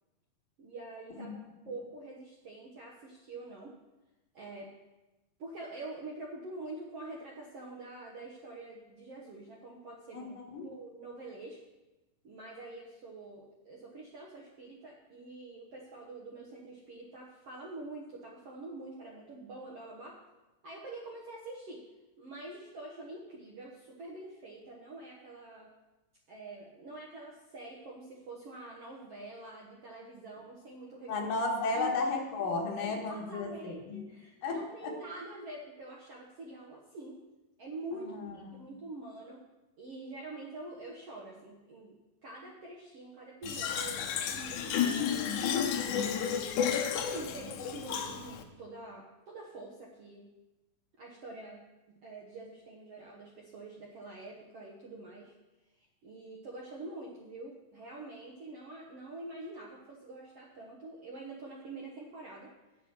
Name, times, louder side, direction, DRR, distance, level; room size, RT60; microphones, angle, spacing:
voice 1, 0.6-3.7 4.3-4.7 5.4-10.3 10.6-11.6 12.2-20.2 20.6-21.8 22.2-25.7 26.3-31.3 31.7-31.9 32.8-37.2 37.6-39.4 39.8-41.9 42.2-46.3 47.0-50.3 51.0-55.3 56.0-62.5, right 2 dB, 70° right, -4 dB, 1.4 m, -46 dB
voice 2, 10.1-10.7 31.1-34.0 34.4-34.9 37.9-38.7, left 3 dB, 65° left, 0 dB, 2.9 m, -34 dB
Fill (with liquid), 43.4-48.4, left 8 dB, 80° left, 1.8 m, -32 dB
9.3 x 7.9 x 5.9 m, 1.1 s
omnidirectional pair, 4.5 m